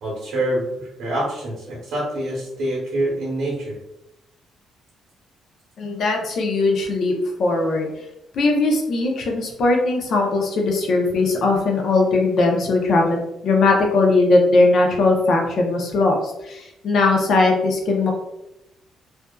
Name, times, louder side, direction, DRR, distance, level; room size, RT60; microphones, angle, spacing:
voice 1, 0.0-3.8, right 1 dB, 75° right, -6 dB, 0.8 m, -26 dB
voice 2, 5.8-7.9 8.3-18.1, left 3 dB, 65° left, 1 dB, 0.6 m, -19 dB
2.6 x 2.3 x 2.2 m, 0.87 s
cardioid pair, 90°, 0 cm